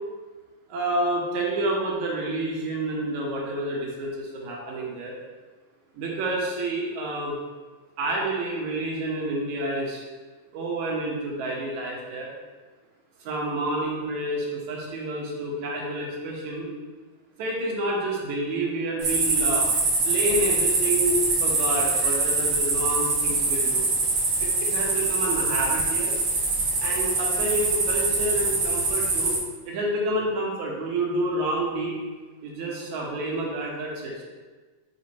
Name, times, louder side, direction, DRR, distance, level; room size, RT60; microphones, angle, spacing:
voice 1, 0.7-5.2 5.9-7.4 8.0-10.0 10.5-12.3 13.2-16.7 17.4-19.7 20.0-23.9 24.4-26.1 26.8-32.0 32.4-34.2, right 1 dB, 70° right, -3 dB, 2.4 m, -29 dB
sound 1, 19.0-29.4, right 3 dB, 55° right, 1.8 m, -24 dB
5.3 x 4.9 x 4.2 m, 1.3 s
omnidirectional pair, 3.6 m